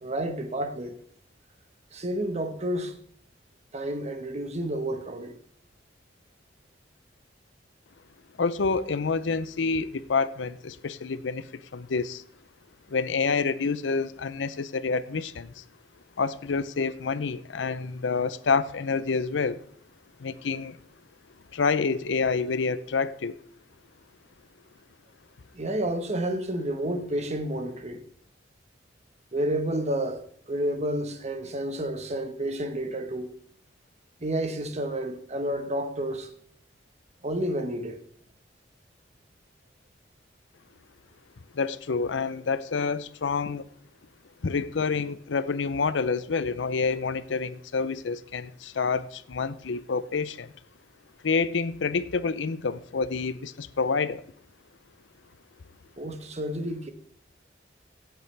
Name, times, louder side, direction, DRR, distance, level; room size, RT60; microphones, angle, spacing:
voice 1, 0.0-1.0 1.9-3.0 3.7-5.4 25.5-28.0 29.3-33.3 34.2-36.3 37.2-38.0 56.0-56.9, right 1 dB, 40° right, 1.2 m, -30 dB
voice 2, 8.4-12.2 12.9-15.6 16.2-19.6 20.2-20.8 21.5-23.4 41.5-43.6 44.4-50.5 51.2-54.2, left 4 dB, 80° left, 0.6 m, -28 dB
16.0 x 8.1 x 3.3 m
head